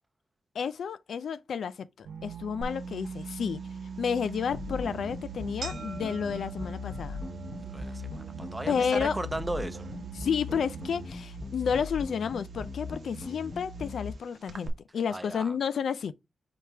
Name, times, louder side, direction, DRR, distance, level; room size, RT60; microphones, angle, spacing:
voice 1, 0.5-3.7 4.0-7.2 8.7-9.2 10.2-16.1, left 7 dB, 80° left, 0.4 m, -31 dB
sound 1, 2.0-11.1, right 8 dB, 90° right, 0.6 m, -42 dB
sound 2, 2.6-14.7, right 3 dB, 65° right, 0.9 m, -48 dB
sound 3, 4.5-14.1, left 3 dB, 25° left, 0.8 m, -40 dB
voice 2, 7.7-9.9 15.1-15.6, right 1 dB, 15° right, 0.7 m, -36 dB
4.8 x 3.4 x 2.8 m
cardioid pair, 80°, 0 cm